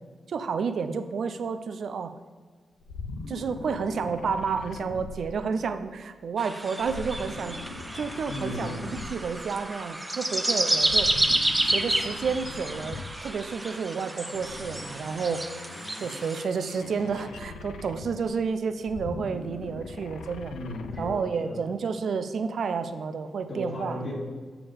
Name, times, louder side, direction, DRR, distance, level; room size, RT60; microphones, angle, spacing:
voice 1, 0.3-2.1 3.3-7.6 7.9-11.1 11.6-15.5 16.0-20.5 21.0-24.0, right 5 dB, 75° right, 10 dB, 0.5 m, -30 dB
sound 1, 2.8-5.9 6.8-9.5 10.8-13.4 14.3-18.3 18.8-21.3, left 3 dB, 85° left, 0.5 m, -41 dB
sound 2, 6.4-16.4, right 1 dB, 20° right, 0.8 m, -30 dB
voice 2, 8.3-8.8 20.5-21.6 23.5-24.1, left 1 dB, 70° left, -3 dB, 2.1 m, -35 dB
7.1 x 7.0 x 3.4 m, 1.5 s
supercardioid pair, 50°, 0 cm